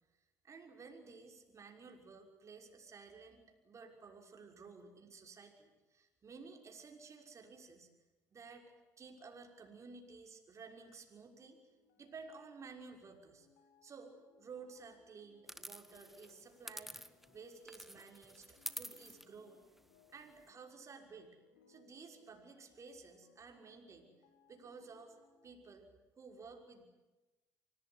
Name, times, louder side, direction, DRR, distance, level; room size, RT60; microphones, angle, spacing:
voice 1, 0.4-7.9 8.3-8.7 9.0-11.6 12.0-13.5 13.8-16.9 17.3-19.6 20.1-21.4 21.7-24.1 24.5-25.2 25.4-25.9 26.2-26.8, right 4 dB, 40° right, 3 dB, 6.1 m, -54 dB
sound 1, 11.4-25.5, left 5 dB, 85° left, 5.1 m, -70 dB
sound 2, 15.5-17.4 17.7-20.5, equal, 5° right, 1.7 m, -49 dB
25.5 x 18.5 x 9.9 m, 1.1 s
supercardioid pair, 75°, 8 cm